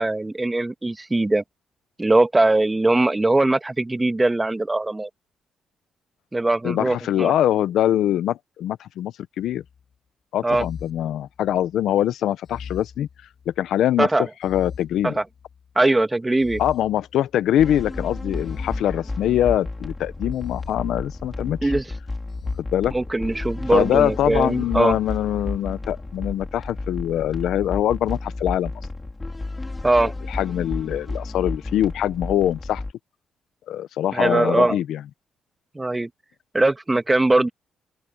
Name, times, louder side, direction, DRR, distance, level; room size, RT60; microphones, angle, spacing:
voice 1, 0.0-1.4 2.0-5.1 6.3-7.3 10.4-10.7 14.0-14.3 15.0-15.2 15.8-16.6 21.6-21.8 22.9-25.0 29.8-30.1 34.1-34.8 35.7-36.1 36.5-37.5, right 2 dB, 15° right, 2.0 m, -20 dB
voice 2, 6.6-9.6 10.3-13.1 13.5-14.1 14.4-15.1 16.6-21.7 22.6-22.9 23.7-28.7 30.3-32.8 33.7-35.0, left 11 dB, 80° left, 0.9 m, -23 dB
sound 1, 9.4-9.8 10.5-11.8 12.4-13.7 14.4-15.7 16.4-17.7 18.4-19.7 20.3-21.6 22.3-22.6, left 6 dB, 50° left, 3.7 m, -40 dB
sound 2, 17.6-32.9, left 2 dB, 20° left, 4.9 m, -32 dB
open air
cardioid pair, 85°, 0 cm